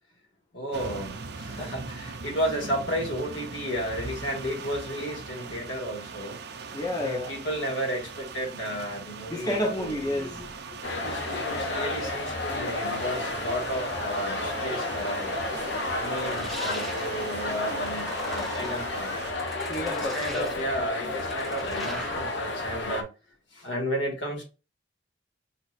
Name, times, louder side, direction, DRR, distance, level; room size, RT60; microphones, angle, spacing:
voice 1, 0.5-6.4 7.0-10.0 10.9-15.3 15.9-19.2 20.0-23.1 23.5-24.4, equal, 90° left, 1.9 m, -33 dB
sound 1, 0.7-19.3, right 4 dB, 60° right, 0.6 m, -40 dB
voice 2, 6.7-7.4 9.3-10.8 19.7-20.6, left 1 dB, 20° left, 1.0 m, -30 dB
sound 2, 10.8-23.0, left 2 dB, 70° left, 0.8 m, -32 dB
sound 3, 16.0-17.1 17.7-18.8 19.4-20.6 21.0-22.3, equal, ahead, 1.2 m, -39 dB
5.9 x 2.8 x 2.5 m
head